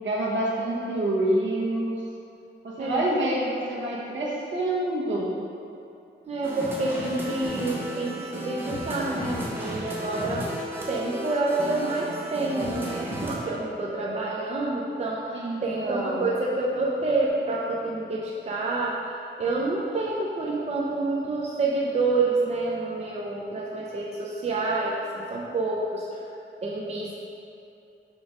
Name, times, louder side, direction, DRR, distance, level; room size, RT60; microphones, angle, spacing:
voice 1, 0.0-1.9 2.6-5.4 15.3-16.2, right 1 dB, 70° right, -5 dB, 1.3 m, -27 dB
voice 2, 2.8-3.1 6.3-10.6 10.9-19.1 19.4-26.2 26.6-27.2, right 2 dB, 35° right, -4 dB, 0.6 m, -28 dB
sound 1, 6.4-13.3, equal, 10° right, 1.0 m, -34 dB
5.2 x 3.8 x 5.0 m, 2.6 s
wide cardioid pair, 130°, 20 cm